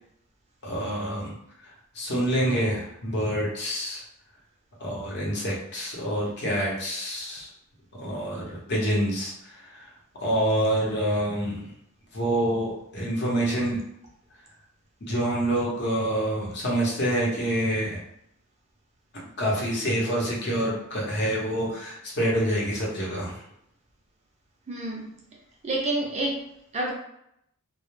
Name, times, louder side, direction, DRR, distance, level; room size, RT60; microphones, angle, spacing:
voice 1, 0.6-1.3 1.9-4.0 4.8-7.5 8.0-9.9 10.2-11.7 12.1-13.8 15.1-18.0 19.4-23.4, right 1 dB, 50° left, -4 dB, 0.8 m, -27 dB
voice 2, 24.7-25.1 25.6-26.4 26.7-26.9, right 2 dB, 30° right, -1 dB, 0.4 m, -28 dB
2.1 x 2.0 x 3.0 m, 0.74 s
head